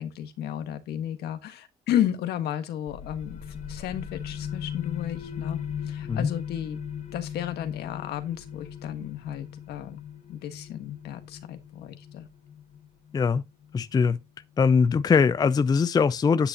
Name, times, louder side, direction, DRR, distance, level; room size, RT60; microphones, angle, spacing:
voice 1, 0.0-5.6 5.9-6.8 7.1-10.0 10.3-12.3, left 11 dB, 70° left, 1.4 m, -33 dB
sound 1, 2.9-14.2, left 8 dB, 40° left, 1.1 m, -38 dB
voice 2, 13.7-14.2 14.6-16.5, left 5 dB, 25° left, 0.4 m, -21 dB
9.7 x 8.2 x 2.8 m
cardioid pair, 110°, 17 cm